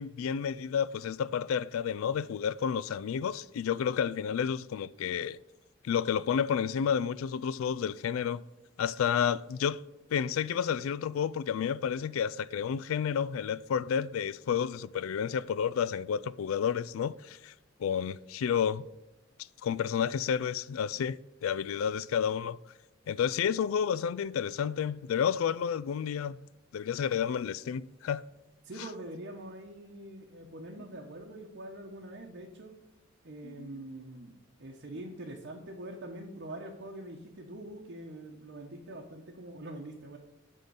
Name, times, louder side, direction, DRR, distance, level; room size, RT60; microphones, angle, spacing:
voice 1, 0.0-5.4 5.8-8.4 8.8-9.8 10.1-17.5 17.8-18.9 19.6-22.6 23.1-26.4 26.7-28.2 33.4-33.8, left 7 dB, 85° left, 0.3 m, -30 dB
voice 2, 28.6-32.7 33.2-40.2, right 1 dB, 55° right, 0.9 m, -44 dB
9.2 x 3.7 x 6.8 m
head